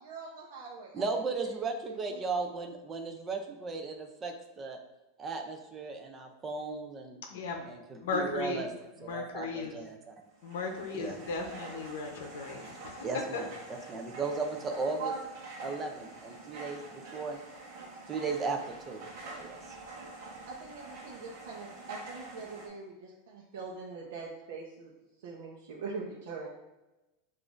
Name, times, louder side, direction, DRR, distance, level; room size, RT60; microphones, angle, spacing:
voice 1, 0.0-1.0 1.4-1.5 1.9-2.2 15.0-15.2 20.5-24.9 25.2-26.5, right 4 dB, 70° right, -4 dB, 0.6 m, -42 dB
voice 2, 0.9-4.8 5.2-7.2 7.7-8.7 9.0-10.1 11.0-11.2 13.0-15.1 15.6-17.4 17.9-19.8, right 4 dB, 15° right, 4 dB, 0.4 m, -36 dB
voice 3, 7.3-7.7 8.0-8.6 9.0-9.9 10.4-13.1 13.3-13.4 13.7-14.0, left 4 dB, 75° left, 2 dB, 0.6 m, -36 dB
sound 1, 10.3-22.7, right 2 dB, 45° right, 0.9 m, -47 dB
6.8 x 2.5 x 2.5 m, 1.0 s
supercardioid pair, 180°, 0 cm